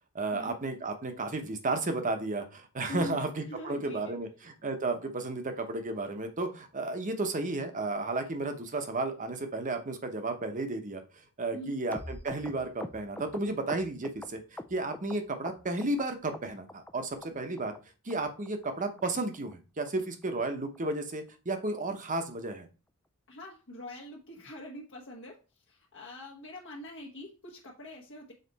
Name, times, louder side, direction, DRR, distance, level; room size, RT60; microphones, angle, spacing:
voice 1, 0.1-11.0 11.4-14.4 14.7-17.7 18.0-22.7, right 2 dB, 35° right, 7 dB, 0.9 m, -33 dB
voice 2, 3.5-4.2 11.5-11.8 23.3-25.4 25.7-28.3, left 1 dB, 60° left, -2 dB, 1.2 m, -43 dB
sound 1, 11.9-15.2 15.4-16.0 16.3-16.9 17.2-17.3 17.6-17.8 18.1-18.2 18.5-18.7 19.0-19.1 19.3-19.5 19.9-20.0 20.2-20.4 20.7-20.8 21.1-21.3 21.6-21.7, left 1 dB, 5° left, 0.3 m, -43 dB
6.6 x 4.1 x 4.1 m, 0.32 s
head